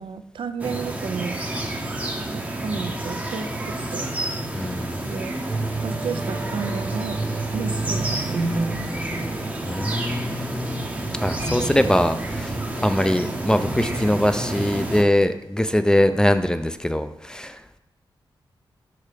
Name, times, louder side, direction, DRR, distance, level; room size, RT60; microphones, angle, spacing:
voice 1, 0.0-1.4 2.3-4.2 5.0-5.4 5.8-7.2 7.5-9.0 11.6-12.1, right 5 dB, 75° right, 10 dB, 0.4 m, -32 dB
sound 1, 0.6-15.0, right 1 dB, 15° right, 0.7 m, -30 dB
voice 2, 4.5-5.1 9.6-10.9 11.2-17.6, left 1 dB, 10° left, 10 dB, 0.3 m, -22 dB
sound 2, 5.5-10.7 11.2-11.4, right 3 dB, 30° right, 1.0 m, -30 dB
4.8 x 4.6 x 4.9 m, 0.85 s
wide cardioid pair, 105°, 9 cm